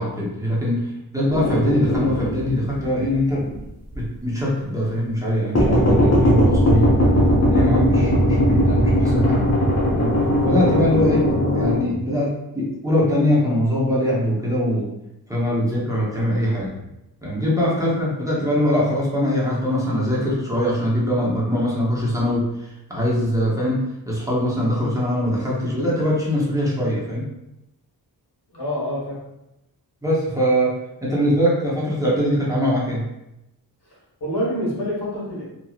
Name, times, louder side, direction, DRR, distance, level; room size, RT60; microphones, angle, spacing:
voice 1, 0.0-3.5 3.9-6.9 7.4-9.5 10.0-11.3 11.5-14.9 15.3-16.9 17.2-27.3 30.0-30.7 31.0-33.1, equal, 10° right, -7 dB, 0.9 m, -22 dB
sound 1, 1.3-3.6 3.9-4.0 5.6-11.8, equal, 40° left, 0.9 m, -19 dB
voice 2, 28.5-29.2 34.2-35.4, equal, 80° left, -6 dB, 1.4 m, -26 dB
2.9 x 2.7 x 2.4 m, 0.89 s
wide cardioid pair, 85°, 39 cm